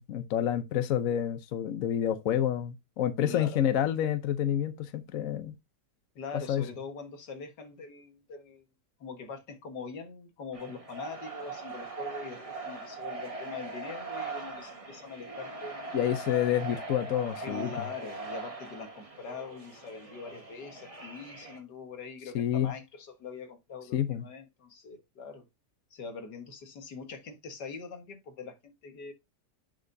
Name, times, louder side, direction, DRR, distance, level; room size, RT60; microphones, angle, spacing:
voice 1, 0.0-5.5 6.5-6.6 15.9-17.7 22.3-22.7 23.9-24.2, left 10 dB, 60° left, 1.0 m, -28 dB
voice 2, 3.2-3.6 6.2-8.7 9.0-16.0 17.4-25.5 25.9-29.1, left 5 dB, 80° left, 2.0 m, -43 dB
sound 1, 10.5-21.6, right 3 dB, 20° right, 1.3 m, -41 dB
10.5 x 5.1 x 2.6 m
omnidirectional pair, 1.8 m